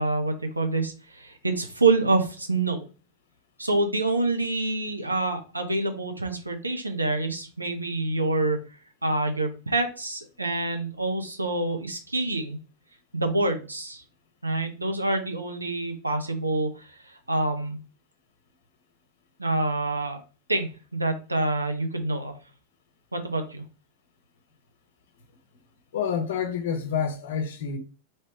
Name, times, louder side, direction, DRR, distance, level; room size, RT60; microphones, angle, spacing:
voice 1, 0.0-2.8 3.6-8.6 9.0-12.6 13.1-14.0 14.4-17.8 19.4-20.2 20.5-22.3 23.1-23.6, right 2 dB, 80° right, 0.7 m, -27 dB
voice 2, 25.9-27.8, left 7 dB, 60° left, 0.7 m, -28 dB
3.1 x 3.0 x 2.9 m
figure-of-eight pair, 90°, 0 cm